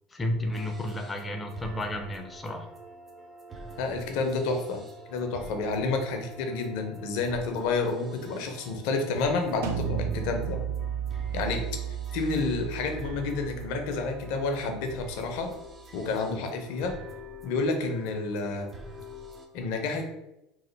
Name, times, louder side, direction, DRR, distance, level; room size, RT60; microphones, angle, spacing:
voice 1, 0.1-2.7, left 1 dB, 20° left, 4 dB, 0.5 m, -32 dB
sound 1, 0.5-19.5, right 1 dB, 25° right, 0.6 m, -47 dB
voice 2, 3.8-4.8 5.1-10.6 11.3-11.7 12.1-15.5 15.9-16.9 17.4-18.7 19.5-20.0, left 3 dB, 65° left, 4 dB, 0.6 m, -29 dB
sound 2, 9.6-15.3, right 8 dB, 75° right, 0.3 m, -34 dB
2.9 x 2.1 x 3.1 m, 0.90 s
hypercardioid pair, 80°, 0 cm